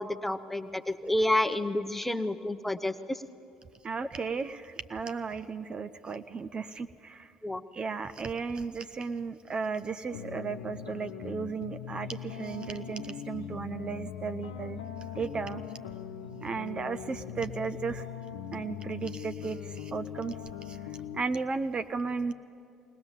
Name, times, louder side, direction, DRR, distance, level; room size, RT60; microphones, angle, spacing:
voice 1, 0.0-3.2 7.4-7.6, left 1 dB, 5° left, 11 dB, 0.9 m, -29 dB
voice 2, 3.8-7.3 7.7-14.8 15.2-15.6 16.4-18.1 18.5-20.3 20.6-20.8 21.1-22.3, right 5 dB, 35° right, 10 dB, 0.6 m, -35 dB
sound 1, 10.1-21.2, left 9 dB, 80° left, 0.9 m, -41 dB
20.0 x 19.5 x 7.3 m, 2.5 s
figure-of-eight pair, 55°, 3 cm